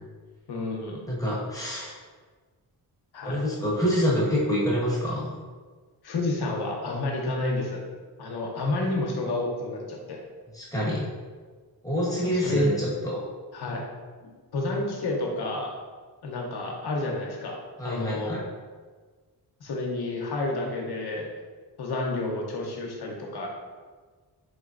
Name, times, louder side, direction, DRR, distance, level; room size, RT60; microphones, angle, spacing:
voice 1, 0.5-1.1 3.1-3.4 6.0-7.8 8.2-10.2 12.2-12.7 13.5-13.8 14.5-15.7 16.2-17.6 17.8-18.3 19.6-21.3 21.8-23.5, left 2 dB, 65° left, -1 dB, 0.7 m, -29 dB
voice 2, 1.1-1.9 3.2-5.3 10.5-11.1 11.8-13.2 17.8-18.4, equal, 10° left, -7 dB, 0.9 m, -26 dB
3.9 x 3.0 x 2.4 m, 1.5 s
wide cardioid pair, 125°, 41 cm